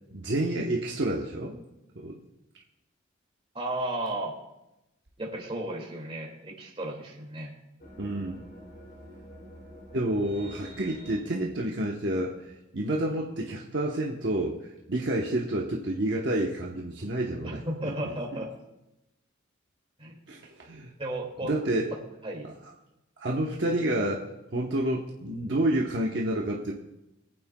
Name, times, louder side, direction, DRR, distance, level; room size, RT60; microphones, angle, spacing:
voice 1, 0.1-1.6 1.9-2.2 8.0-8.4 9.9-12.3 12.7-14.6 14.9-17.6 18.0-18.1 20.3-20.9 21.4-21.9 23.2-24.2 24.5-26.7, right 1 dB, 60° right, -2 dB, 1.0 m, -29 dB
voice 2, 3.5-4.3 5.2-7.5 17.4-18.5 20.0-20.1 21.0-21.5 22.2-22.5, right 1 dB, 30° right, 0 dB, 2.2 m, -34 dB
sound 1, 7.8-11.2, equal, 50° left, 2.8 m, -47 dB
24.0 x 8.8 x 2.3 m, 0.94 s
head